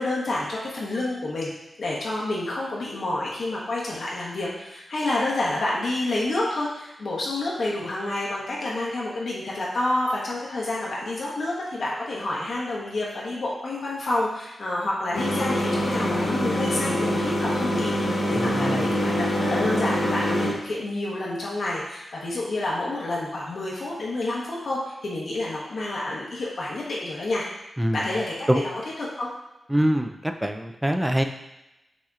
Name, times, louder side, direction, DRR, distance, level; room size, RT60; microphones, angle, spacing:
voice 1, 0.0-1.5 1.8-27.4 27.9-28.7 29.0-29.3, left 2 dB, 65° left, -5 dB, 1.0 m, -29 dB
sound 1, 15.1-20.5, equal, 90° left, 1.2 m, -25 dB
voice 2, 18.3-18.9 27.8-28.0 28.5-28.6 29.7-31.2, right 1 dB, 10° right, 5 dB, 0.3 m, -24 dB
6.1 x 2.8 x 2.4 m, 0.95 s
wide cardioid pair, 120°, 0 cm